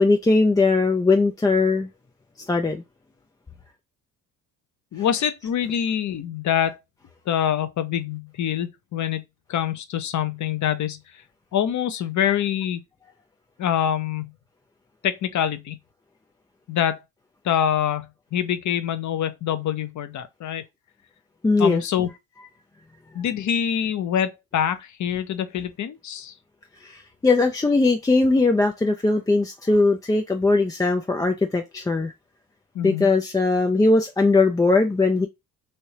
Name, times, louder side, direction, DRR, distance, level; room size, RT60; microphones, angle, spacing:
voice 1, 0.0-1.9 2.5-2.8 21.4-21.8 26.8-32.1 32.8-35.3, left 3 dB, 10° left, 0.4 m, -20 dB
voice 2, 4.9-6.8 7.3-9.2 9.5-11.2 11.5-12.8 13.6-14.3 15.0-15.8 16.7-17.0 17.4-20.6 21.6-22.1 23.1-26.3 32.7-33.1, left 9 dB, 45° left, 0.7 m, -25 dB
3.2 x 2.6 x 2.9 m
supercardioid pair, 65°, 40 cm